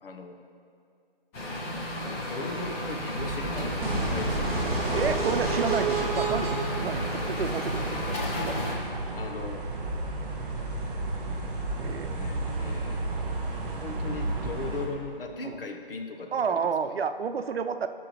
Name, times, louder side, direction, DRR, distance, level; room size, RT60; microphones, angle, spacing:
voice 1, 0.0-0.4 2.3-4.8 9.2-9.6 11.8-13.0 13.8-16.6 16.9-17.0, left 3 dB, 65° left, 4 dB, 1.2 m, -38 dB
sound 1, 1.3-8.7, left 1 dB, 15° left, 0.9 m, -33 dB
sound 2, 3.2-14.9, right 2 dB, 40° right, 2.0 m, -33 dB
sound 3, 3.8-7.8, right 3 dB, 5° right, 0.4 m, -30 dB
voice 2, 4.9-8.6 11.7-12.1 15.4-15.6 16.3-17.9, right 6 dB, 90° right, 10 dB, 0.6 m, -31 dB
17.5 x 6.0 x 3.2 m, 2.4 s
hypercardioid pair, 160°, 30 cm